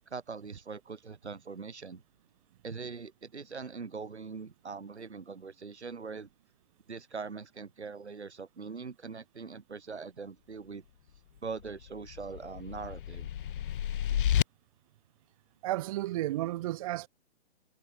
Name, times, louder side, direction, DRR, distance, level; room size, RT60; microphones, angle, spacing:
voice 1, 0.0-2.0 2.6-6.3 6.9-10.8 11.4-13.3, right 5 dB, 80° right, 3.0 m, -42 dB
sound 1, 11.6-14.4, left 10 dB, 50° left, 1.8 m, -31 dB
voice 2, 15.6-17.1, right 15 dB, 30° right, 0.8 m, -32 dB
figure-of-eight pair, 135°, 33 cm